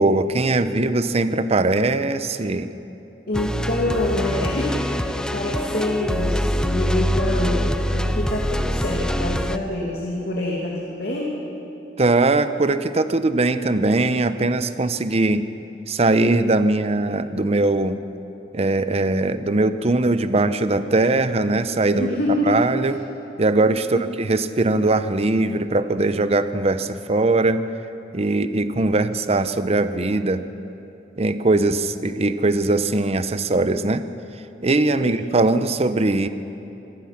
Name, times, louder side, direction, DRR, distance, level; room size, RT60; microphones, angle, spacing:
voice 1, 0.0-2.7 12.0-15.4 15.9-18.0 18.5-22.1 22.5-23.0 23.4-27.6 28.1-30.4 31.2-34.0 34.6-36.3, right 2 dB, 35° right, 11 dB, 0.8 m, -20 dB
voice 2, 3.3-11.4 21.9-22.6 24.0-24.1 35.0-35.2, left 1 dB, 60° left, -3 dB, 2.6 m, -26 dB
sound 1, 3.3-9.6, equal, 5° left, 0.6 m, -24 dB
25.0 x 18.0 x 5.9 m, 2.9 s
head